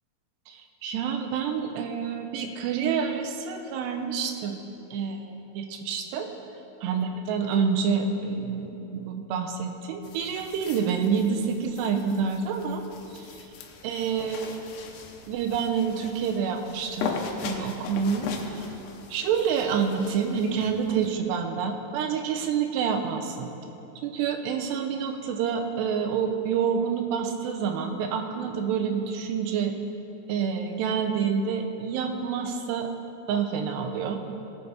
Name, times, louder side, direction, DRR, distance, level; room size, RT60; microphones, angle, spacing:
voice 1, 0.5-4.6 4.9-6.3 6.8-12.8 13.1-13.3 13.8-14.5 15.3-18.7 19.1-23.5 24.0-29.8 30.3-32.9 33.3-34.2, right 6 dB, 90° right, 4 dB, 2.9 m, -28 dB
sound 1, 10.0-21.2, left 5 dB, 80° left, 2.7 m, -39 dB
17.5 x 6.5 x 4.6 m, 2.9 s
omnidirectional pair, 4.8 m